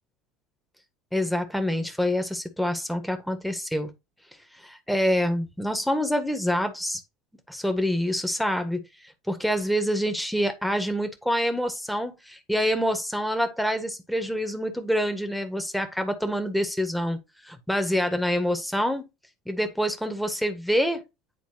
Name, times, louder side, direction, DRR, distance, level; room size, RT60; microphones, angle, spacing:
voice 1, 1.1-3.9 4.6-7.0 7.5-8.8 9.3-17.2 17.5-19.0 19.5-21.0, equal, ahead, 1.4 m, -26 dB
9.4 x 4.1 x 2.8 m
hypercardioid pair, 75°, 0 cm